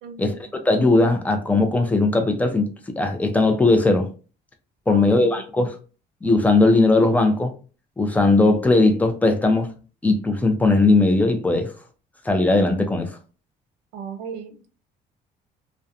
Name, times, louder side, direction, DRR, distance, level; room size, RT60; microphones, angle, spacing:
voice 1, 0.0-0.3 4.9-5.3 5.6-5.7 13.9-14.7, right 6 dB, 90° right, 0.5 m, -35 dB
voice 2, 0.6-4.1 4.9-5.8 6.2-7.5 8.0-9.7 10.0-11.7 12.2-13.1, left 2 dB, 10° left, 0.5 m, -18 dB
2.7 x 2.1 x 2.4 m
cardioid pair, 110°, 17 cm